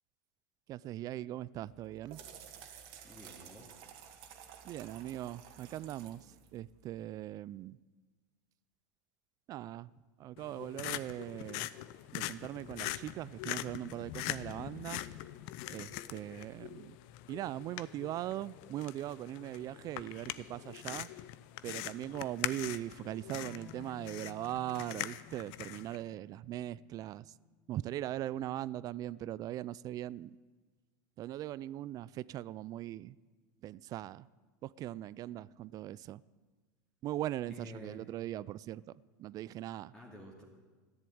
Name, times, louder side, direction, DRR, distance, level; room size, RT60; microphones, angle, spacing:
voice 1, 0.7-2.2 4.6-7.8 9.5-9.9 10.2-11.7 12.1-15.0 15.7-17.0 17.3-21.1 21.6-27.3 27.7-30.4 31.2-33.2 33.6-34.3 34.6-36.2 37.0-38.8 39.2-39.9, right 13 dB, 35° right, 21 dB, 0.3 m, -40 dB
sound 1, 1.6-7.2, right 8 dB, 55° right, 2.1 m, -53 dB
voice 2, 3.0-3.8 37.5-38.0 39.9-40.4, equal, 5° left, -3 dB, 2.5 m, -50 dB
sound 2, 10.4-26.0, left 15 dB, 55° left, 0.6 m, -43 dB
sound 3, 23.4-28.6, left 11 dB, 80° left, 1.6 m, -58 dB
13.5 x 11.0 x 8.6 m, 1.3 s
supercardioid pair, 120°, 10 cm